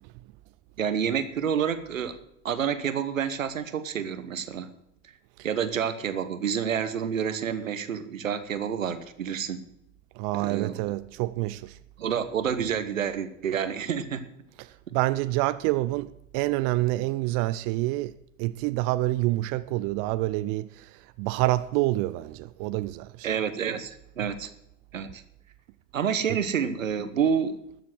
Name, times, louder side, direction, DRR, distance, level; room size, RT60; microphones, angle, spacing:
voice 1, 0.8-2.2 2.4-4.7 5.4-9.6 10.4-10.8 12.0-14.3 23.2-24.5 24.9-25.2 25.9-27.6, right 7 dB, 85° right, 1.2 m, -28 dB
voice 2, 10.2-11.8 14.6-23.3 26.3-26.4, right 18 dB, 50° right, 0.6 m, -27 dB
13.0 x 7.5 x 7.6 m
hypercardioid pair, 80°, 39 cm